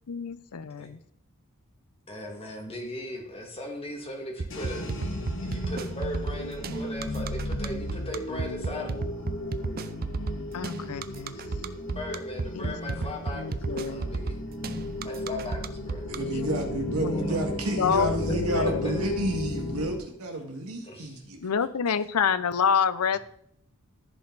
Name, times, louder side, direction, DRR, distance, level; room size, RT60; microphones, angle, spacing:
voice 1, 0.1-1.0 10.5-11.4 12.6-14.1 16.3-17.3 17.8-18.9 21.4-23.2, left 7 dB, 90° left, 15 dB, 0.6 m, -28 dB
voice 2, 2.1-8.9 11.9-14.4 15.0-16.0 17.1-17.4 18.8-18.9 20.9-21.0, left 1 dB, 25° left, 1 dB, 2.1 m, -38 dB
sound 1, 4.4-16.2, right 4 dB, 45° right, 0.5 m, -32 dB
sound 2, 4.5-20.0, left 1 dB, 60° left, 1.6 m, -35 dB
voice 3, 16.1-21.1, right 1 dB, 75° right, 2 dB, 2.1 m, -30 dB
14.5 x 5.3 x 4.0 m, 0.68 s
head